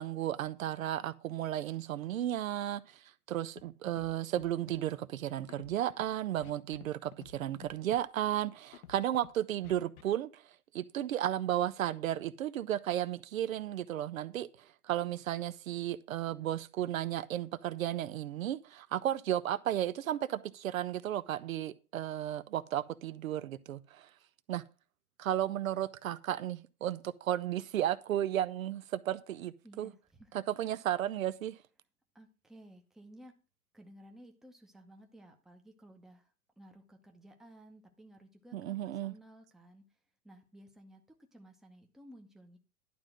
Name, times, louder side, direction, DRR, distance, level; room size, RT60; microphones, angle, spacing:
voice 1, 0.0-3.0 3.3-10.4 10.7-14.5 14.8-24.1 24.5-24.6 25.2-29.9 30.3-31.6 38.5-39.1, right 12 dB, 65° right, 0.7 m, -34 dB
Scratching (performance technique), 3.6-3.7 3.9-4.1 4.4-4.8 5.5-6.0 6.4-6.9 7.1-7.3 7.6-8.0 8.7-9.3 9.6-10.0, left 10 dB, 70° left, 1.1 m, -51 dB
voice 2, 29.6-30.4 32.1-33.3 33.7-39.9 40.2-41.1 41.3-42.6, right 1 dB, ahead, 0.8 m, -56 dB
11.0 x 3.7 x 7.5 m
hypercardioid pair, 125°, 45 cm